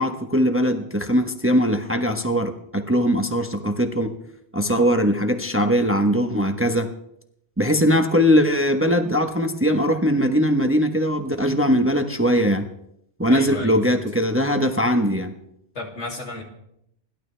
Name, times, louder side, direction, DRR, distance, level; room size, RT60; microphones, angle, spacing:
voice 1, 0.0-4.1 4.5-6.9 7.6-12.7 13.2-15.3, equal, 10° right, 5 dB, 1.0 m, -20 dB
voice 2, 13.3-14.0 15.7-16.4, left 2 dB, 75° left, 0 dB, 3.0 m, -33 dB
29.5 x 12.0 x 3.3 m, 0.77 s
omnidirectional pair, 1.2 m